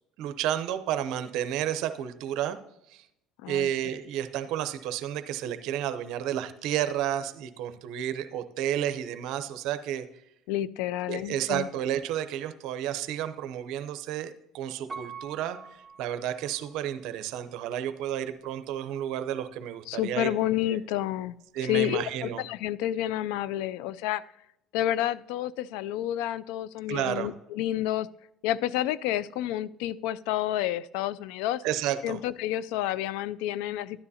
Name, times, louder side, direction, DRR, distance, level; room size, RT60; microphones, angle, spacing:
voice 1, 0.2-2.6 2.9-3.0 3.5-10.1 11.1-15.6 16.0-20.3 20.7-20.8 21.5-22.4 26.9-27.3 31.6-32.2, right 11 dB, 70° right, 11 dB, 0.6 m, -31 dB
voice 2, 10.5-11.7 19.9-21.3 21.6-24.2 24.7-28.1 28.4-31.6 32.0-34.0, left 13 dB, 85° left, 18 dB, 0.3 m, -29 dB
Piano, 14.9-16.9 17.4-17.5, right 5 dB, 15° right, 1.5 m, -44 dB
12.5 x 9.7 x 2.8 m, 0.83 s
supercardioid pair, 95°, 0 cm